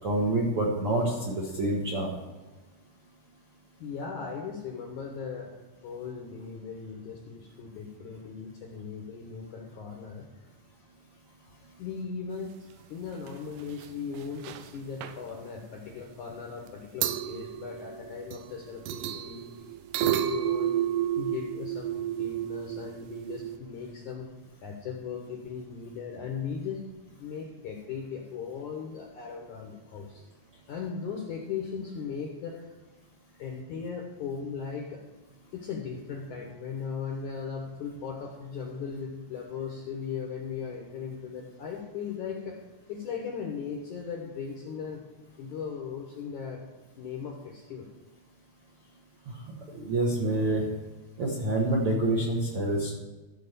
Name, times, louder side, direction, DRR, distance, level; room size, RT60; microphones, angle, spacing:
voice 1, 0.0-2.1 49.7-50.6 51.2-52.9, right 1 dB, 60° right, -4 dB, 1.5 m, -27 dB
voice 2, 3.8-5.5 5.8-10.3 11.8-19.5 20.0-20.9 21.2-24.3 24.6-30.2 30.7-32.7 33.3-35.0 35.5-42.6 42.9-45.0 45.4-46.6 47.0-47.9, left 6 dB, 65° left, 1 dB, 1.9 m, -38 dB
sound 1, 13.1-13.3 13.6-13.9 14.1-14.7 15.0-15.2 16.7-16.8 17.0-18.5 18.9-23.6, right 11 dB, 85° right, 2.8 m, -31 dB
14.0 x 4.8 x 6.8 m, 1.2 s
omnidirectional pair, 4.9 m